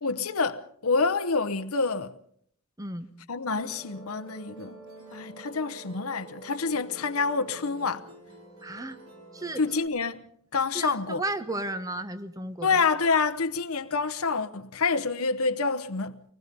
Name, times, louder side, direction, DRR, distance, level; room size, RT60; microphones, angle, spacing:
voice 1, 0.0-2.1 3.3-4.8 5.1-8.1 9.6-11.2 12.6-16.2, left 4 dB, 90° left, 1.0 m, -27 dB
voice 2, 2.8-3.1 8.6-9.0 9.3-9.6 10.7-12.8, right 2 dB, 15° right, 1.1 m, -34 dB
Musical instrument, 3.5-9.9, right 2 dB, 80° right, 4.7 m, -48 dB
24.5 x 19.5 x 5.4 m
head